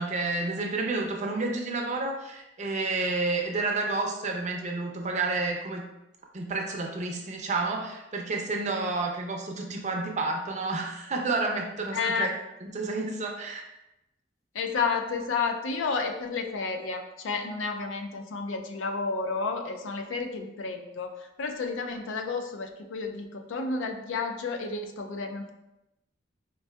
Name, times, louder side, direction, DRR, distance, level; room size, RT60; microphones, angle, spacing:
voice 1, 0.0-5.8 6.3-12.3 12.6-13.6, right 3 dB, 40° right, 1 dB, 0.5 m, -30 dB
voice 2, 11.9-12.3 14.5-25.5, left 4 dB, 85° left, 5 dB, 0.4 m, -31 dB
4.5 x 2.6 x 2.2 m, 0.92 s
head